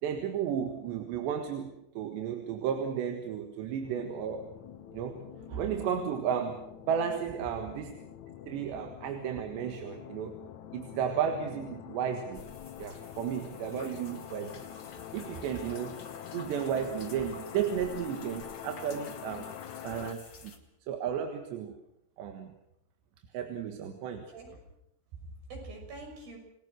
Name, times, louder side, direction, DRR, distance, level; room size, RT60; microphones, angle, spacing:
voice 1, 0.0-4.5 4.9-7.9 8.5-10.4 10.7-12.4 12.8-14.7 15.1-16.0 16.3-19.5 19.8-20.6 20.9-21.8 22.2-22.5 23.3-24.3, right 8 dB, 90° right, 5 dB, 3.8 m, -33 dB
sound 1, 3.8-20.1, left 10 dB, 70° left, 1.8 m, -45 dB
sound 2, 12.3-20.6, left 5 dB, 35° left, 2.0 m, -51 dB
voice 2, 15.0-15.4 24.3-24.6 25.1-26.4, right 3 dB, 60° right, 2 dB, 8.0 m, -45 dB
28.5 x 20.5 x 6.4 m, 0.82 s
omnidirectional pair, 4.9 m